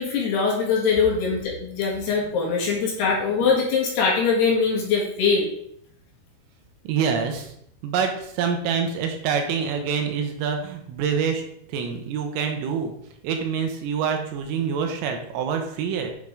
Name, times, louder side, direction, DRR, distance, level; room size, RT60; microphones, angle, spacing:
voice 1, 0.0-5.5, left 5 dB, 60° left, -3 dB, 3.4 m, -22 dB
voice 2, 6.9-7.5 7.8-11.4 11.7-12.9 13.2-16.1, right 6 dB, 80° right, 4 dB, 3.6 m, -26 dB
10.0 x 6.5 x 3.6 m, 0.70 s
omnidirectional pair, 5.9 m